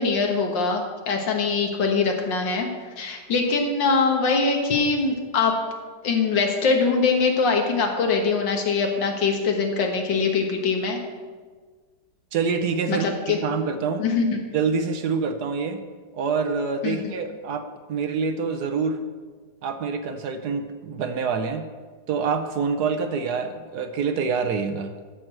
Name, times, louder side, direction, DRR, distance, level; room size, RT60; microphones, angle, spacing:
voice 1, 0.0-2.7 3.0-5.6 6.0-11.0 12.9-13.4 14.0-14.4 16.8-17.0, left 4 dB, 80° left, 3 dB, 2.1 m, -23 dB
voice 2, 12.3-13.1 13.4-14.0 14.5-15.8 16.1-19.0 19.6-21.7 22.1-24.9, right 5 dB, 65° right, 7 dB, 1.3 m, -26 dB
13.0 x 4.7 x 7.5 m, 1.5 s
omnidirectional pair, 2.0 m